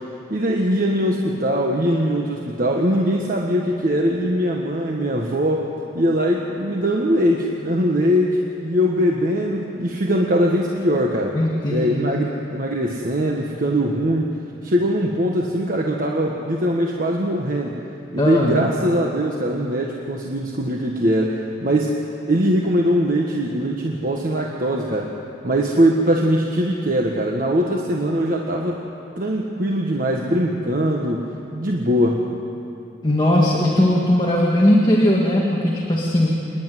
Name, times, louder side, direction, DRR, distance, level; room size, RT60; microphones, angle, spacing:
voice 1, 0.3-5.7 5.9-11.4 11.7-14.3 14.6-17.8 18.1-22.0 22.3-25.1 25.4-28.8 29.2-31.2 31.5-32.2, equal, 55° right, -1 dB, 1.4 m, -21 dB
voice 2, 11.3-12.0 18.2-18.6 33.0-36.4, left 1 dB, 25° left, -3 dB, 1.8 m, -18 dB
27.5 x 10.5 x 9.3 m, 2.7 s
head